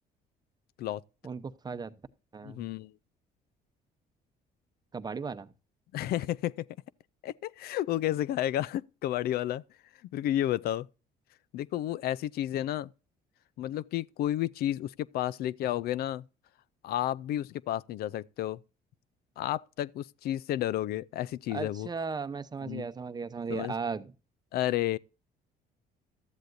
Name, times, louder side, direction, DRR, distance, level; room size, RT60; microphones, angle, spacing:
voice 1, 1.2-2.0 2.3-2.7 4.9-5.5 21.5-24.1, right 5 dB, 25° right, 0.8 m, -36 dB
voice 2, 2.4-2.9 5.9-6.7 7.2-9.6 10.1-10.9 11.5-12.9 13.6-16.2 16.8-18.6 19.4-21.9 22.6-22.8 23.5-23.7 24.5-25.0, left 13 dB, 65° left, 0.4 m, -31 dB
13.0 x 10.5 x 2.6 m
cardioid pair, 110°, 17 cm